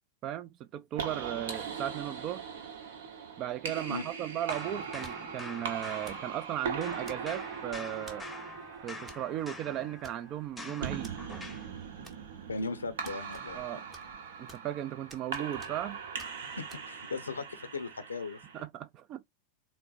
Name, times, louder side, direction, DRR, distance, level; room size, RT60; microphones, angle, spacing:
voice 1, 0.2-2.5 3.4-8.3 8.8-11.1 13.5-13.8 14.4-16.0 18.5-19.3, right 12 dB, 35° right, 0.3 m, -36 dB
sound 1, 0.9-18.6, right 6 dB, 60° right, 0.8 m, -40 dB
sound 2, 4.5-6.6 6.8-11.7, left 3 dB, 5° left, 0.8 m, -46 dB
sound 3, 5.0-5.4 6.0-6.3 7.1-7.5 8.1-8.3 9.1-9.3 9.5-9.6 10.0-10.5 11.0-11.2 12.0-12.5 13.0-13.7 13.9-14.8 15.1-15.9 16.2-16.3 16.7-16.8, right 2 dB, 20° right, 0.8 m, -52 dB
voice 2, 12.5-13.6 16.6-18.4, left 3 dB, 75° left, 0.5 m, -37 dB
4.0 x 2.1 x 2.4 m
figure-of-eight pair, 90°, 0 cm